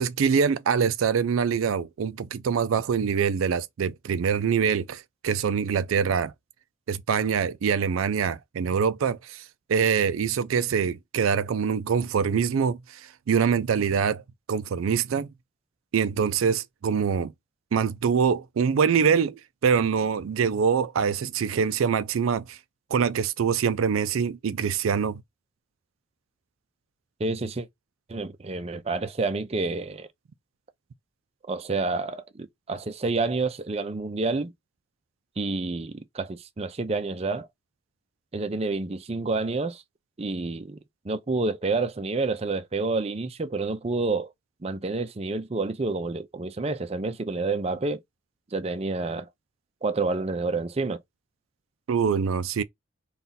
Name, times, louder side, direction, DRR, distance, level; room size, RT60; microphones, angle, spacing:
voice 1, 0.0-6.3 6.9-9.4 9.7-13.0 13.3-14.2 14.5-15.3 15.9-17.3 17.7-22.6 22.9-25.2 51.9-52.6, right 6 dB, 90° right, 0.4 m, -24 dB
voice 2, 27.2-27.7 28.1-30.1 31.5-34.5 35.4-37.5 38.3-39.8 40.2-40.8 41.0-44.3 44.6-48.0 48.5-49.3 49.8-51.0, right 3 dB, 30° right, 0.5 m, -29 dB
4.0 x 2.4 x 3.9 m
head